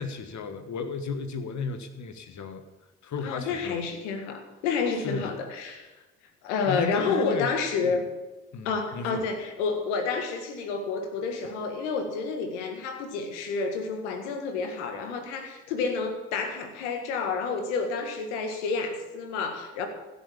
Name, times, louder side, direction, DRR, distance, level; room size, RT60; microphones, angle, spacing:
voice 1, 0.0-2.6 3.0-3.9 5.0-5.3 5.9-6.0 6.7-7.5 7.8-8.0 8.5-9.2, left 5 dB, 55° left, 9 dB, 1.6 m, -34 dB
voice 2, 3.2-5.8 6.4-8.1 8.6-19.9, left 4 dB, 85° left, 6 dB, 1.8 m, -29 dB
16.0 x 7.1 x 8.5 m, 1.1 s
hypercardioid pair, 45°, 34 cm